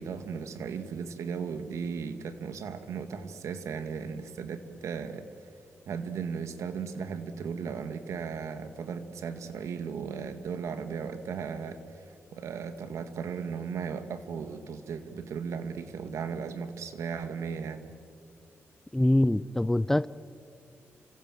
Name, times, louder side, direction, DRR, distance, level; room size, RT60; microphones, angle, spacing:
voice 1, 0.0-5.3 5.9-17.9, right 6 dB, 85° right, 9 dB, 2.0 m, -36 dB
voice 2, 18.9-20.1, left 1 dB, 10° left, 18 dB, 0.6 m, -24 dB
28.5 x 25.0 x 7.8 m, 2.3 s
cardioid pair, 90°, 5 cm